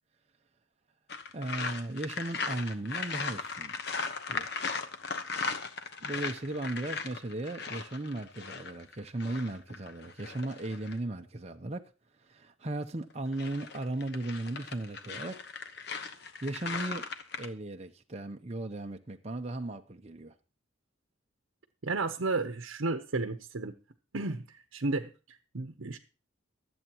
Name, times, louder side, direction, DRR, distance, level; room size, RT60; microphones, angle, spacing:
sound 1, 1.1-11.0 13.1-17.5, left 4 dB, 55° left, 1.0 m, -38 dB
voice 1, 1.3-3.9 4.3-4.5 6.0-11.8 12.2-15.4 16.4-17.0 17.4-20.3, right 2 dB, 30° right, 0.6 m, -36 dB
voice 2, 21.8-23.7 24.1-26.0, right 3 dB, 80° right, 0.8 m, -33 dB
23.5 x 8.0 x 3.0 m
head